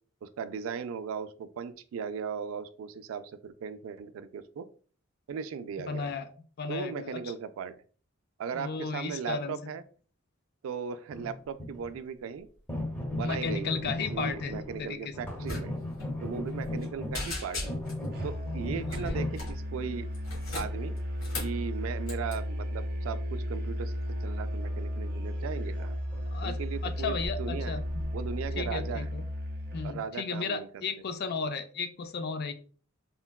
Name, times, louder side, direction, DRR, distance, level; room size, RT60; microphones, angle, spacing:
voice 1, 0.2-4.7 5.3-6.1 6.7-7.7 8.4-9.8 10.6-12.5 13.1-15.7 16.2-17.6 18.2-20.1 20.5-21.0 21.4-23.9 24.2-25.9 26.4-27.8 28.1-29.1 29.8-30.8, right 6 dB, 75° right, 12 dB, 0.3 m, -37 dB
voice 2, 5.9-6.3 6.6-7.2 8.5-9.6 13.2-15.0 18.9-19.2 26.3-28.1 28.6-29.2 29.7-32.5, left 5 dB, 50° left, 9 dB, 0.4 m, -34 dB
sound 1, 11.1-11.9 12.7-14.8 15.1-19.4 25.6-25.7 26.1-26.2 26.6-26.7 27.1-27.3 27.7-28.7, left 1 dB, 10° left, 0.7 m, -36 dB
sound 2, 15.4-15.6 15.9-16.0 16.5-16.8 17.1-18.0 18.9-19.6 20.1-21.6 22.0-22.3, left 2 dB, 75° left, 1.4 m, -37 dB
Musical instrument, 18.1-30.0, equal, 50° right, 0.7 m, -34 dB
3.7 x 2.2 x 2.2 m, 0.41 s
head